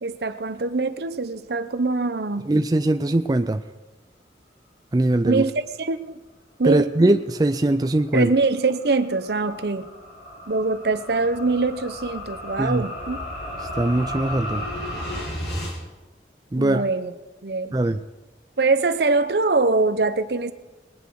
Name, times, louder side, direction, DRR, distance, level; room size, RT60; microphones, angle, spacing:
voice 1, 0.0-2.5 5.2-6.2 6.6-6.9 8.1-9.9 10.5-13.2 16.6-17.1 17.4-17.7 18.6-20.5, right 3 dB, 70° right, 11 dB, 0.8 m, -23 dB
voice 2, 2.5-3.7 4.9-5.4 6.6-8.3 12.6-12.8 13.8-14.6 16.5-16.8 17.7-18.0, right 1 dB, 20° right, 8 dB, 0.4 m, -21 dB
sound 1, 7.9-15.8, left 1 dB, 70° left, 2.9 m, -34 dB
20.5 x 9.2 x 4.8 m, 1.1 s
head